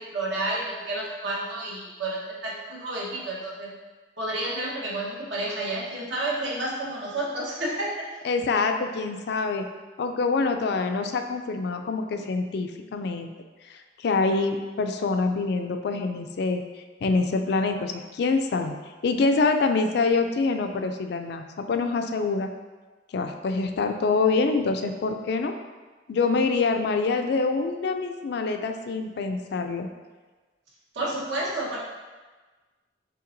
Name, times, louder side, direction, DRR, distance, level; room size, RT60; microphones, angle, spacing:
voice 1, 0.0-3.7 4.2-8.2 30.9-31.8, right 1 dB, 75° right, -4 dB, 1.2 m, -30 dB
voice 2, 8.2-9.7 10.0-13.3 13.7-16.6 17.0-18.7 19.0-22.5 23.1-25.5 26.1-29.9, left 4 dB, 60° left, 6 dB, 0.4 m, -25 dB
5.6 x 3.6 x 2.6 m, 1.3 s
head